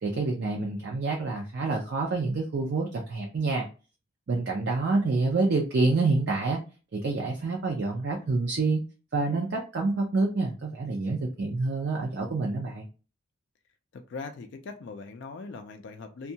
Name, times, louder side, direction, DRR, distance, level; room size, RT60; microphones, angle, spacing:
voice 1, 0.0-3.7 4.3-6.6 6.9-8.8 9.1-12.9, right 3 dB, 55° right, 0 dB, 0.4 m, -27 dB
voice 2, 13.9-16.3, left 4 dB, 55° left, 6 dB, 0.3 m, -40 dB
2.6 x 2.2 x 2.7 m, 0.34 s
head